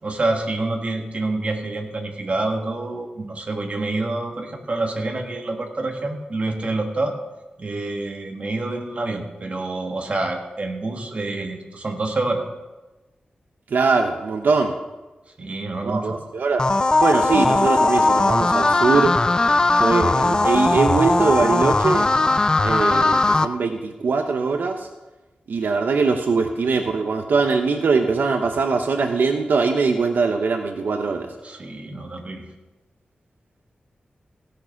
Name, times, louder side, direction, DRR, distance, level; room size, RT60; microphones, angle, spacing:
voice 1, 0.0-7.1 7.6-12.4 15.4-16.2 31.4-32.5, right 2 dB, 40° right, 2 dB, 1.7 m, -27 dB
voice 2, 13.7-14.7 15.8-16.7 17.0-19.1 19.7-22.1 22.6-24.9 25.5-31.3, right 4 dB, 80° right, 5 dB, 0.8 m, -21 dB
sound 1, 16.6-23.5, left 2 dB, 25° left, 0.5 m, -18 dB
16.0 x 6.8 x 5.8 m, 1.1 s
wide cardioid pair, 125°, 3 cm